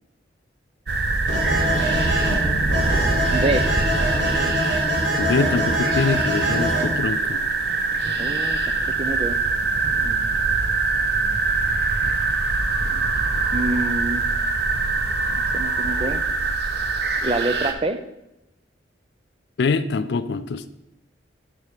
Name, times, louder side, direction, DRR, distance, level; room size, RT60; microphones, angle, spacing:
sound 1, 0.9-17.7, right 3 dB, 60° right, 0.7 m, -23 dB
sound 2, 1.3-6.9, equal, 80° right, 1.7 m, -25 dB
voice 1, 2.6-3.0 3.3-3.7 8.2-9.4 10.0-10.3 13.5-14.3 15.4-16.2 17.2-18.0, right 2 dB, 30° right, 0.4 m, -27 dB
voice 2, 5.2-7.4 19.6-20.7, left 4 dB, 65° left, 0.4 m, -24 dB
6.9 x 4.6 x 4.9 m
head